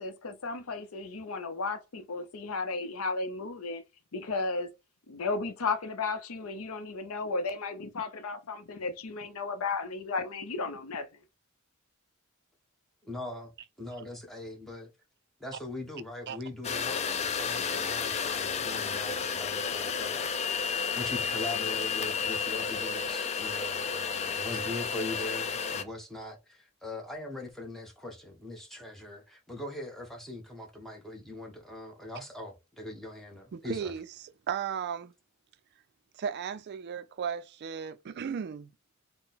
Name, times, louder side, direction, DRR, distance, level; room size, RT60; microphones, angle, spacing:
voice 1, 0.0-3.8 4.1-4.7 5.1-11.1, left 3 dB, 85° left, 0.6 m, -34 dB
voice 2, 13.0-13.5 13.8-14.9 15.4-33.9, left 1 dB, ahead, 0.9 m, -41 dB
sound 1, 16.6-25.8, left 6 dB, 30° left, 0.4 m, -32 dB
voice 3, 33.5-35.1 36.2-38.7, right 7 dB, 50° right, 0.3 m, -35 dB
4.0 x 2.1 x 3.9 m
head